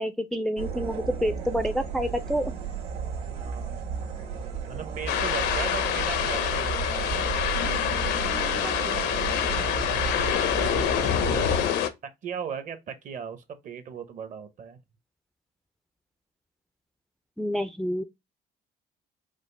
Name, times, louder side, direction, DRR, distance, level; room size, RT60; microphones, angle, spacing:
voice 1, 0.0-2.5 8.6-8.8 17.4-18.0, equal, ahead, 0.4 m, -28 dB
sound 1, 0.6-11.7, right 6 dB, 75° right, 1.9 m, -33 dB
voice 2, 3.3-3.8 4.7-7.3 10.3-11.6 12.0-14.8, right 7 dB, 50° right, 0.9 m, -38 dB
sound 2, 5.1-11.9, left 9 dB, 80° left, 0.7 m, -26 dB
5.0 x 2.1 x 3.2 m
cardioid pair, 110°, 17 cm